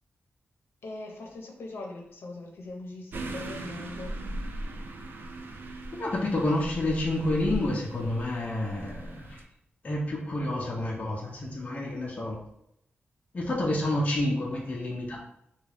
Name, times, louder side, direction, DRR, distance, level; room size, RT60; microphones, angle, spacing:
voice 1, 0.8-4.1, left 2 dB, 70° left, 0 dB, 0.7 m, -41 dB
sound 1, 3.1-9.4, right 1 dB, 50° right, 0.3 m, -39 dB
voice 2, 6.0-9.4 9.8-12.4 13.3-15.2, left 1 dB, 35° left, -3 dB, 0.5 m, -29 dB
3.6 x 2.3 x 3.3 m, 0.78 s
wide cardioid pair, 165°, 4 cm